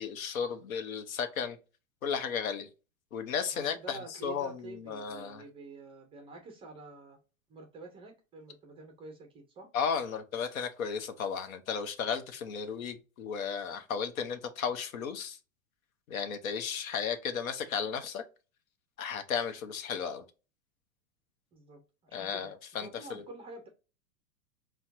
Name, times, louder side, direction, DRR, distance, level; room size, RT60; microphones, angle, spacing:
voice 1, 0.0-1.6 2.0-2.7 3.1-5.4 9.7-15.4 16.1-18.2 19.0-20.2 22.1-23.2, left 6 dB, 75° left, 0.8 m, -34 dB
voice 2, 3.5-7.2 7.5-9.7 21.5-23.7, right 2 dB, 15° right, 0.4 m, -48 dB
4.2 x 2.2 x 2.4 m
hypercardioid pair, 115°, 41 cm